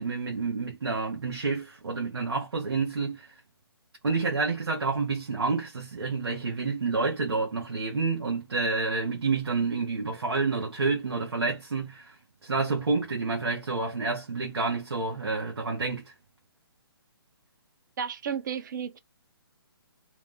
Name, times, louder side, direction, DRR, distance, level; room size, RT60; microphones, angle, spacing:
voice 1, 0.0-3.3 4.0-12.2 12.4-16.1, right 4 dB, 80° right, 0.9 m, -29 dB
voice 2, 18.0-19.0, right 7 dB, 50° right, 0.6 m, -33 dB
2.9 x 2.0 x 3.3 m
figure-of-eight pair, 140°, 13 cm